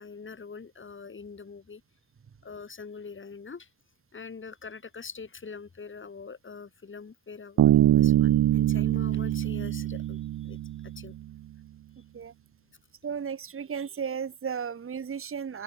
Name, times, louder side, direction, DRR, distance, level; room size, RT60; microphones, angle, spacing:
voice 1, 0.0-1.8 2.4-3.7 4.1-11.1, left 5 dB, 30° left, 5.4 m, -44 dB
Bass guitar, 7.6-11.0, right 13 dB, 50° right, 0.8 m, -23 dB
voice 2, 13.0-15.6, right 7 dB, 35° right, 1.9 m, -34 dB
open air
supercardioid pair, 80°, 38 cm